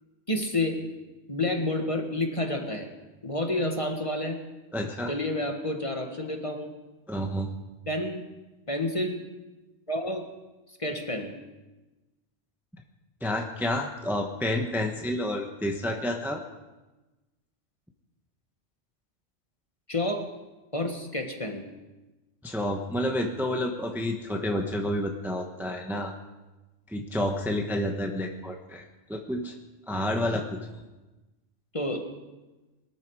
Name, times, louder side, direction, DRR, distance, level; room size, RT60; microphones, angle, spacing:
voice 1, 0.3-0.9 1.3-2.9 3.2-4.4 5.1-6.7 7.9-8.3 8.7-9.2 9.9-10.2 10.8-11.3 19.9-20.3 20.7-21.6 31.7-32.1, left 1 dB, 25° left, 3 dB, 1.7 m, -29 dB
voice 2, 4.7-5.1 7.1-7.5 13.2-16.4 22.4-26.1 26.9-28.8 29.1-29.5 29.9-30.5, left 1 dB, ahead, 2 dB, 1.1 m, -29 dB
21.5 x 13.5 x 4.8 m, 1.1 s
omnidirectional pair, 1.3 m